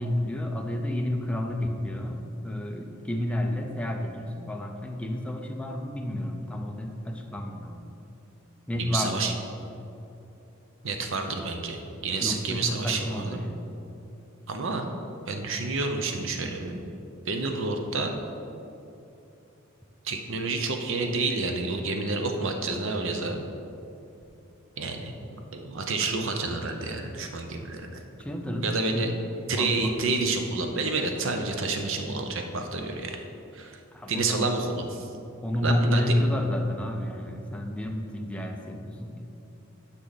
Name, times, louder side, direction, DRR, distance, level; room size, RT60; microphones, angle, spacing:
voice 1, 0.0-7.9 8.7-9.3 12.2-13.7 28.2-29.1 29.5-30.2 33.9-34.6 35.4-39.2, left 1 dB, 5° left, 2 dB, 0.6 m, -30 dB
voice 2, 8.8-9.3 10.8-13.4 14.5-14.9 15.3-16.8 17.3-18.1 20.0-23.5 24.8-25.1 25.5-28.0 28.6-29.1 29.5-33.2 33.5-33.8 34.1-35.1 35.6-36.2, right 3 dB, 65° right, 5 dB, 0.8 m, -29 dB
9.7 x 5.8 x 4.1 m, 2.8 s
head